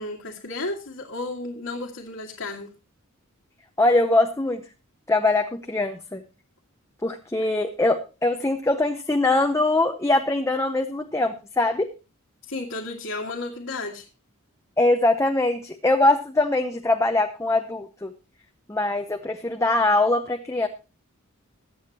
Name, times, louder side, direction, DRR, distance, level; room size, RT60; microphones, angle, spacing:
voice 1, 0.0-2.7 12.5-14.1, left 2 dB, 75° left, -5 dB, 2.0 m, -33 dB
voice 2, 3.8-4.6 5.1-6.2 7.0-11.9 14.8-18.1 18.7-20.7, left 2 dB, 15° left, 5 dB, 0.7 m, -22 dB
21.5 x 7.9 x 2.9 m, 0.32 s
head